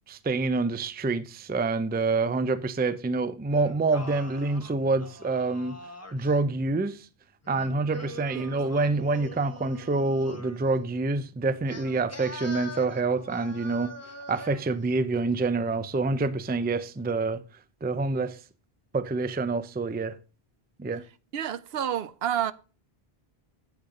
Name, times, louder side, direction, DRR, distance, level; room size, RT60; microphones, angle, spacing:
voice 1, 0.1-5.8 6.1-7.1 7.5-13.9 14.3-17.4 17.8-18.4 18.9-20.2 20.8-21.0, right 3 dB, 15° right, 0.3 m, -27 dB
Singing, 3.6-6.4 7.4-10.6 11.7-14.8, left 1 dB, 15° left, 1.1 m, -43 dB
voice 2, 21.3-22.5, right 9 dB, 75° right, 0.9 m, -29 dB
8.6 x 8.0 x 5.1 m
omnidirectional pair, 1.0 m